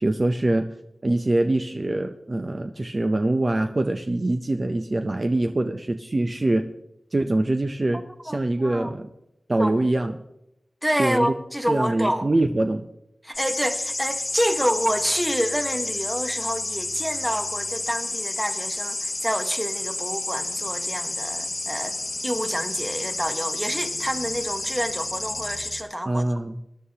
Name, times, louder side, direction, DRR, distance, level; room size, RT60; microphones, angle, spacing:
voice 1, 0.0-0.7 1.0-6.7 7.1-9.1 9.5-10.2 11.0-11.3 11.7-12.8 26.1-26.6, right 2 dB, 35° right, 0.5 m, -24 dB
voice 2, 8.3-8.9 9.6-9.9 10.8-12.3 13.2-21.9 22.2-26.3, equal, 5° right, 1.0 m, -28 dB
sound 1, 13.3-25.8, left 2 dB, 35° left, 0.9 m, -30 dB
20.5 x 11.0 x 2.8 m
wide cardioid pair, 105°, 0 cm